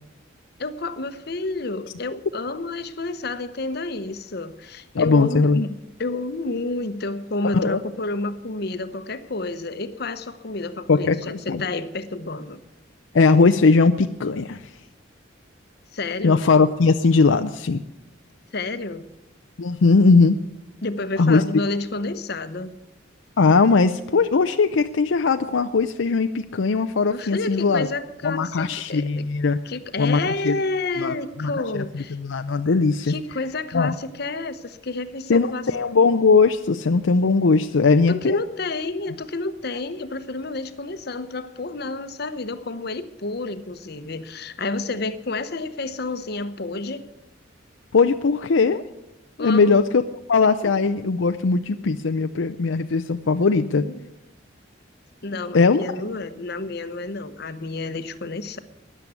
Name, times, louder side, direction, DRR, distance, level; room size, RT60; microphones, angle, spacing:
voice 1, 0.6-12.6 15.9-16.4 18.5-19.1 20.8-22.7 27.1-29.3 29.6-32.2 33.0-35.6 38.1-47.1 49.4-49.8 50.6-50.7 53.5-54.1 55.2-58.6, left 2 dB, 55° left, 0.9 m, -30 dB
voice 2, 4.9-5.6 7.4-7.8 10.9-11.6 13.1-14.7 16.2-17.8 19.6-20.4 21.2-21.4 23.4-27.9 28.2-29.6 30.0-30.6 31.0-33.1 33.7-33.9 35.3-38.4 47.9-48.8 49.4-50.0 50.3-53.8 55.5-55.9, left 4 dB, 75° left, 0.5 m, -19 dB
13.0 x 10.0 x 8.2 m
head